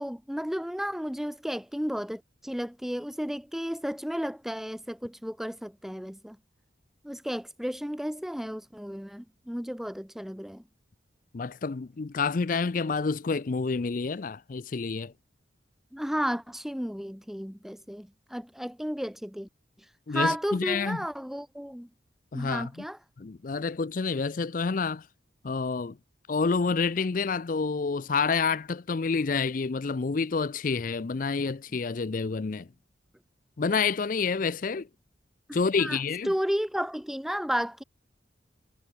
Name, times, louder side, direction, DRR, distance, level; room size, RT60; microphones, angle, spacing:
voice 1, 0.0-6.4 7.0-10.6 15.9-19.5 20.1-21.9 22.3-23.0 35.8-36.0 36.2-37.8, equal, ahead, 0.6 m, -33 dB
voice 2, 11.3-15.1 20.1-21.0 22.3-22.7 23.2-25.1 25.4-26.0 26.3-32.7 33.6-34.9 35.5-36.3, left 4 dB, 45° left, 0.5 m, -28 dB
head